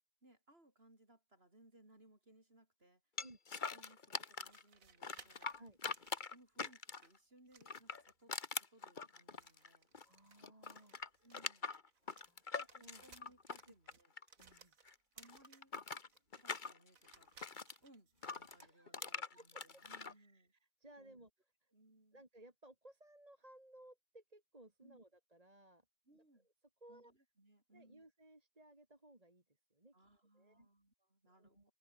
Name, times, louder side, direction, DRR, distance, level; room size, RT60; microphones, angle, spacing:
voice 1, 0.2-3.0 3.7-5.5 6.3-9.9 11.2-11.7 12.7-14.1 15.1-15.7 16.4-17.3 17.8-20.5 21.0-21.2 21.7-22.2 24.8-25.0 26.0-26.5 26.9-28.0 29.9-31.7, right 1 dB, 45° right, 6.7 m, -66 dB
sound 1, 3.2-4.6 5.0-7.2 7.6-10.1 10.4-14.6 14.8-17.8 18.2-20.1, left 4 dB, 40° left, 1.5 m, -44 dB
sound 2, 4.3-7.1 7.5-8.2 9.3-12.3 12.5-15.7 16.1-18.7, right 5 dB, 85° right, 2.3 m, -64 dB
voice 2, 10.0-11.3 12.0-13.1 14.4-14.7 18.6-19.6 20.1-20.5 20.8-21.3 21.6-21.7 22.1-25.8 26.1-26.2 26.8-27.1 27.7-29.4 29.7-29.9 30.3-30.7 31.2-31.7, right 1 dB, 25° right, 3.4 m, -61 dB
omnidirectional pair, 1.4 m